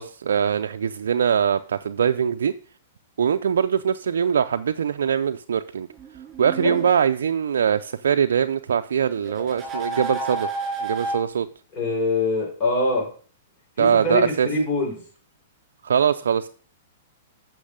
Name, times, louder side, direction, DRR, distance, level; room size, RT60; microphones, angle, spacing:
voice 1, 0.0-2.5 3.2-5.9 6.4-10.5 10.8-11.5 13.8-14.5 15.8-16.5, right 7 dB, 80° right, 8 dB, 0.4 m, -22 dB
sound 1, 6.0-6.9 9.3-11.2, right 2 dB, 20° right, 3.7 m, -30 dB
voice 2, 11.7-13.1 13.8-15.0, left 2 dB, 40° left, -1 dB, 5.2 m, -24 dB
8.6 x 6.1 x 5.0 m, 0.42 s
hypercardioid pair, 125°, 0 cm